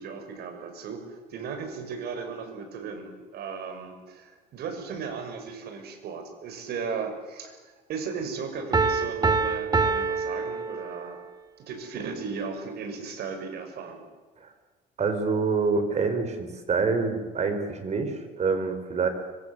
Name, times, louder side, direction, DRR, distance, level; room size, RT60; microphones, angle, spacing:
voice 1, 0.0-11.2 11.6-14.0, right 5 dB, 70° right, 6 dB, 6.0 m, -36 dB
Piano, 8.7-11.3, right 4 dB, 25° right, 1.9 m, -26 dB
voice 2, 15.0-19.1, right 4 dB, 40° right, 8 dB, 5.0 m, -26 dB
24.5 x 23.5 x 8.1 m, 1.3 s
cardioid pair, 110°, 17 cm